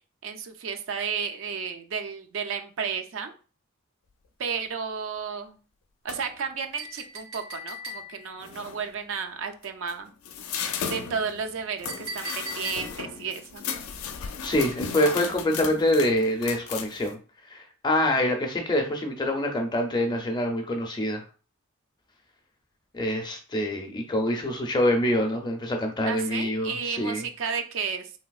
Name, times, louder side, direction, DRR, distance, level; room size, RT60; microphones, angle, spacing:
voice 1, 0.2-3.3 4.4-5.6 6.0-10.1 10.8-13.6 26.0-28.1, right 6 dB, 65° right, 6 dB, 0.4 m, -32 dB
sound 1, 6.1-6.4 8.0-8.1 8.4-8.9 9.6-17.1, left 6 dB, 85° left, 0.4 m, -35 dB
Chink clink, 6.8-8.4 11.9-13.2, right 1 dB, 90° right, 1.6 m, -39 dB
voice 2, 14.4-17.2 17.5-21.2 22.9-27.2, left 1 dB, 20° left, 3 dB, 0.5 m, -25 dB
3.2 x 2.7 x 2.3 m, 0.37 s
head